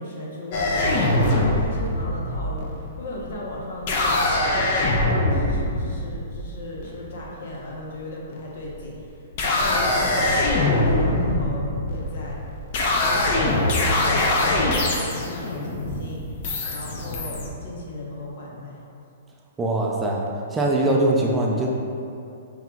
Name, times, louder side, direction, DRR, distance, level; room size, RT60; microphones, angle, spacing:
voice 1, 0.0-4.4 4.7-12.4 12.9-18.8, left 1 dB, 65° left, -3 dB, 0.9 m, -36 dB
sound 1, 0.5-7.3 8.3-8.8 9.2-17.5, left 2 dB, 50° left, 0.6 m, -23 dB
voice 2, 19.6-21.7, right 1 dB, 10° right, -2 dB, 0.4 m, -22 dB
5.5 x 3.1 x 2.4 m, 2.6 s
hypercardioid pair, 140°, 0 cm